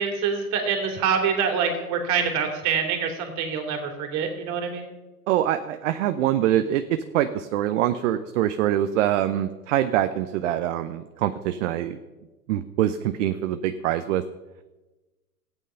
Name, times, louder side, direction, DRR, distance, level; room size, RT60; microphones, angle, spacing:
voice 1, 0.0-4.8, right 6 dB, 35° right, 4 dB, 2.8 m, -25 dB
voice 2, 5.3-12.0 12.5-14.2, right 12 dB, 55° right, 10 dB, 0.8 m, -24 dB
14.0 x 9.3 x 5.6 m, 1.2 s
hypercardioid pair, 120°, 46 cm